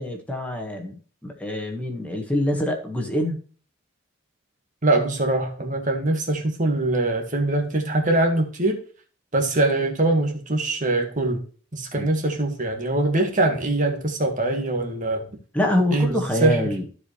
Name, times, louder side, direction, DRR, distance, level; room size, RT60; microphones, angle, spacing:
voice 1, 0.0-3.4 11.9-12.1 15.5-16.8, left 1 dB, 5° left, 1 dB, 1.5 m, -25 dB
voice 2, 4.8-8.8 9.3-11.4 11.7-15.2 15.9-16.6, right 2 dB, 35° right, 3 dB, 1.7 m, -23 dB
14.5 x 4.9 x 3.2 m, 0.41 s
head